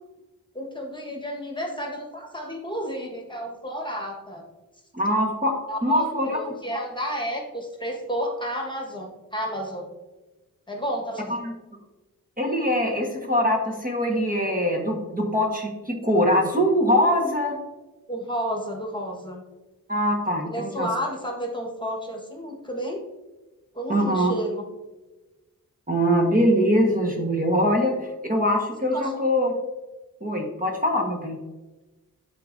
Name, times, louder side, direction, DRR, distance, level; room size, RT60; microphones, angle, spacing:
voice 1, 0.5-4.4 5.7-9.9 10.7-11.4 18.1-19.4 20.4-23.0 23.7-24.6 28.9-29.1, equal, 15° left, 0 dB, 1.3 m, -31 dB
voice 2, 4.9-5.5 5.8-6.4 11.3-11.5 12.4-17.6 19.9-20.9 23.9-24.3 25.9-27.9 28.3-29.5 30.2-31.4, equal, 25° right, 0 dB, 1.2 m, -22 dB
11.5 x 3.8 x 2.6 m, 1.1 s
wide cardioid pair, 90°, 35 cm